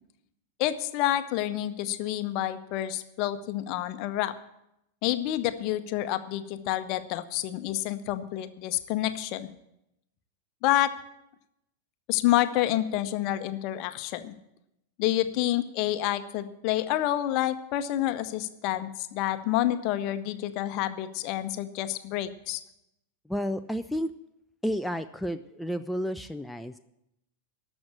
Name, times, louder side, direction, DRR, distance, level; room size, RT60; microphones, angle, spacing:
voice 1, 0.6-4.3 5.0-9.5 10.6-10.9 12.1-14.3 15.0-22.6, left 13 dB, 45° left, 11 dB, 0.8 m, -28 dB
voice 2, 23.3-24.1 24.6-26.8, equal, ahead, 7 dB, 0.4 m, -31 dB
13.5 x 6.3 x 8.5 m, 0.84 s
figure-of-eight pair, 90°, 0 cm